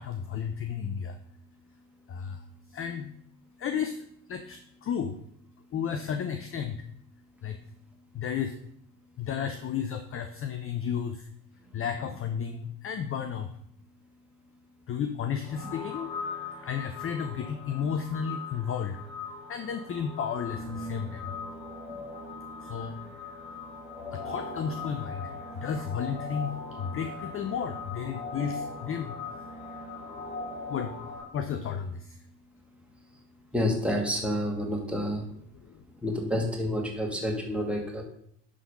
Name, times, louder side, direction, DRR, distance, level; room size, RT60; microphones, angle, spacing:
voice 1, 0.0-5.2 5.6-7.7 8.1-8.6 9.2-13.6 14.9-16.2 16.5-21.4 22.6-23.0 23.5-23.6 24.0-33.5 35.5-36.0, left 7 dB, 30° left, 8 dB, 0.7 m, -34 dB
sound 1, 15.4-31.2, left 3 dB, 50° left, 3.3 m, -40 dB
voice 2, 33.5-35.2 36.0-38.0, equal, ahead, 0 dB, 2.2 m, -29 dB
11.0 x 3.9 x 5.2 m, 0.69 s
figure-of-eight pair, 60°, 49 cm